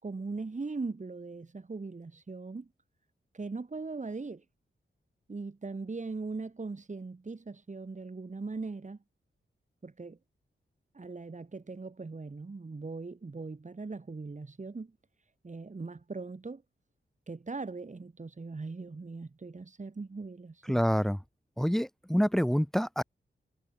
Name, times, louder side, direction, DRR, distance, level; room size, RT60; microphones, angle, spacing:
voice 1, 0.0-2.7 3.3-4.4 5.3-9.0 9.8-10.2 10.9-14.9 15.4-16.6 17.3-20.8, right 3 dB, 35° right, 3.9 m, -40 dB
voice 2, 20.7-21.2 21.6-23.0, equal, ahead, 3.3 m, -27 dB
wide cardioid pair, 110°, 20 cm